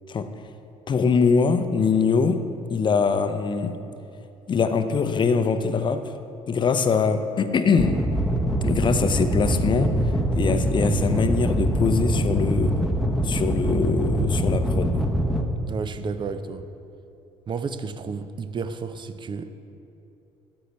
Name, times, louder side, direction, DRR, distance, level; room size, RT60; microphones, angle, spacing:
voice 1, 0.9-2.4 2.7-3.7 4.5-6.1 6.5-8.0 8.6-9.9 10.4-12.8 13.2-15.1, left 5 dB, 30° left, 9 dB, 0.7 m, -23 dB
sound 1, 7.8-15.4, right 1 dB, ahead, 0.9 m, -23 dB
voice 2, 15.7-16.7 17.5-19.5, right 5 dB, 30° right, 11 dB, 0.6 m, -31 dB
13.0 x 8.9 x 3.2 m, 2.7 s
figure-of-eight pair, 55°, 16 cm